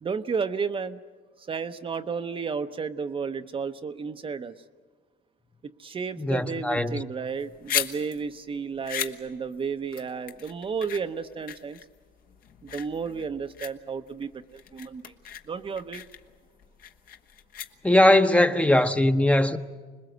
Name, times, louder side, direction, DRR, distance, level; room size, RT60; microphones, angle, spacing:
voice 1, 0.0-1.0 1.4-4.5 5.6-11.8 12.6-15.1 15.5-16.1, right 5 dB, 30° right, 0.8 m, -32 dB
voice 2, 6.2-7.0 17.8-19.6, left 1 dB, 5° left, 0.9 m, -20 dB
sound 1, 7.3-18.2, left 9 dB, 60° left, 1.3 m, -37 dB
26.0 x 20.5 x 7.9 m
cardioid pair, 110°, 17 cm